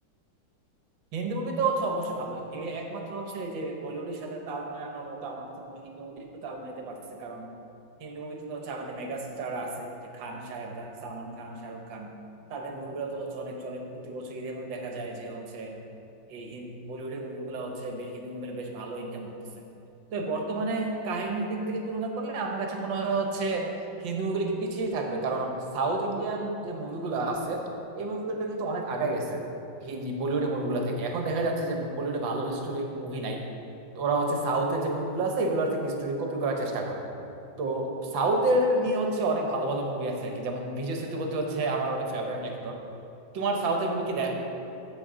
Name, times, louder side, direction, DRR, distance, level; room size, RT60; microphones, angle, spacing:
voice 1, 1.1-7.5 8.0-12.1 12.5-15.8 16.3-19.7 20.1-23.7 24.0-27.6 27.9-29.4 29.8-33.4 33.9-37.0 37.6-42.8 43.3-44.3, right 2 dB, 75° right, 2 dB, 1.7 m, -30 dB
13.5 x 5.4 x 3.7 m, 2.8 s
omnidirectional pair, 2.1 m